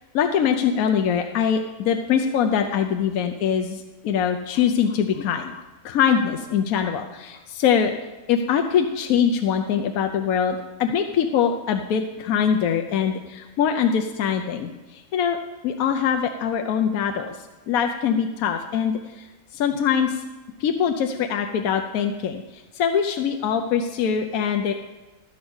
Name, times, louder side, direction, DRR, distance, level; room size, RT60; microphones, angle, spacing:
voice 1, 0.1-5.5 5.8-7.9 8.3-15.4 15.6-17.3 17.7-19.0 19.5-20.2 20.6-24.7, left 7 dB, 80° left, 5 dB, 1.1 m, -23 dB
12.5 x 5.5 x 7.9 m, 1.1 s
omnidirectional pair, 1.5 m